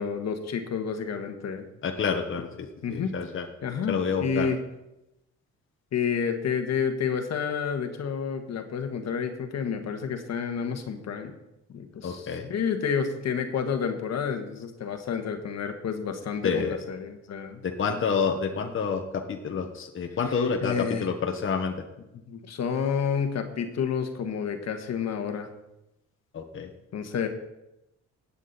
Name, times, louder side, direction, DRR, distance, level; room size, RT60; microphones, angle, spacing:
voice 1, 0.0-1.7 2.8-3.1 3.6-4.6 5.9-11.3 11.7-12.2 12.5-17.6 20.6-21.0 22.3-25.5 26.9-27.3, left 6 dB, 60° left, 6 dB, 1.5 m, -29 dB
voice 2, 1.8-3.5 3.9-4.5 12.0-12.5 16.4-16.8 17.6-21.8 26.3-26.7, left 5 dB, 45° left, 3 dB, 1.3 m, -28 dB
16.5 x 8.6 x 4.2 m, 0.91 s
cardioid pair, 90°, 30 cm